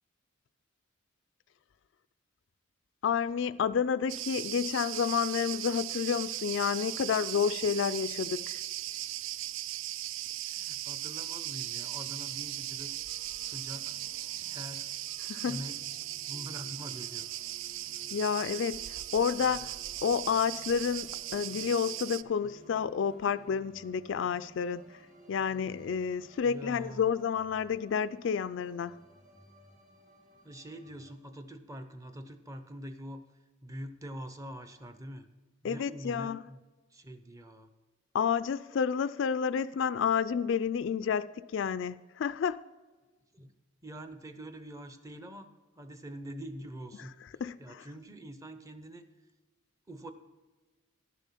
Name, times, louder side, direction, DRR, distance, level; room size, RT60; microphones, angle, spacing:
voice 1, 3.0-8.6 15.2-15.6 18.1-24.8 25.3-29.0 35.6-36.4 38.1-42.6 47.4-47.8, left 7 dB, 60° left, 0.3 m, -30 dB
Cricket, 4.1-22.2, right 14 dB, 65° right, 0.3 m, -38 dB
voice 2, 10.4-12.9 13.4-14.0 14.5-14.9 15.4-15.8 16.3-17.3 26.4-27.1 30.4-33.2 33.6-35.3 35.6-36.6 36.9-37.7 43.3-43.5 43.8-45.5 45.8-47.1 47.6-49.1 49.9-50.1, equal, 15° right, 0.7 m, -44 dB
sound 1, 11.6-31.1, equal, 35° right, 2.0 m, -58 dB
11.0 x 7.0 x 5.8 m
head